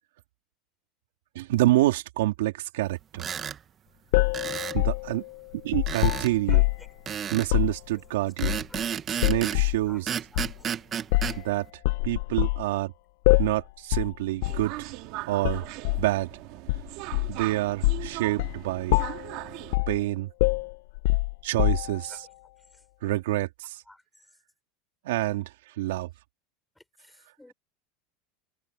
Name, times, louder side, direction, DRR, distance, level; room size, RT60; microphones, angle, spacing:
voice 1, 1.4-3.2 4.7-5.2 5.5-6.7 7.3-8.6 9.1-10.1 11.4-11.7 12.0-12.9 13.4-14.9 15.3-15.6 16.0-16.3 17.3-19.0 19.9-20.3 21.4-22.3 23.0-23.8 25.0-26.1, right 16 dB, 80° right, 3.9 m, -27 dB
sound 1, 3.1-3.6 4.3-4.8 5.9-6.3 7.1-7.5 8.4-9.6 10.1-11.4, right 8 dB, 30° right, 1.4 m, -32 dB
sound 2, 4.1-6.9 7.4-7.8 8.4-8.8 9.2-9.8 10.3-10.5 11.1-11.4 11.8-12.6 13.2-13.6 13.9-14.1 14.4-14.7 15.4-16.1 16.7-17.4 17.8-18.1 18.4-18.6 18.9-19.3 19.7-20.0 20.4-22.1, left 20 dB, 70° left, 1.0 m, -24 dB
voice 2, 9.9-10.4 15.1-15.3 22.1-22.2 22.7-22.8 23.9-24.0 26.8-27.5, left 1 dB, 5° left, 6.2 m, -52 dB
sound 3, 14.4-19.8, right 21 dB, 55° right, 2.3 m, -39 dB
supercardioid pair, 130°, 0 cm